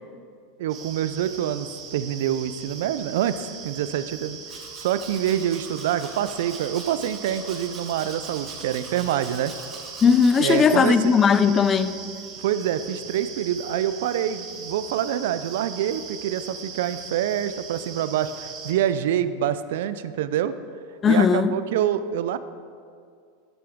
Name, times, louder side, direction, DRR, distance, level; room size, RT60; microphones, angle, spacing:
voice 1, 0.6-4.4 4.8-9.5 10.4-11.1 12.4-20.5 21.1-22.4, right 10 dB, 75° right, 0.4 m, -26 dB
sound 1, 0.7-18.7, right 5 dB, 45° right, 1.3 m, -40 dB
Domestic sounds home sounds, 4.5-10.7, right 3 dB, 25° right, 1.7 m, -43 dB
voice 2, 10.0-12.0 21.0-21.5, left 6 dB, 25° left, 0.4 m, -18 dB
9.6 x 7.0 x 3.6 m
supercardioid pair, 120°, 0 cm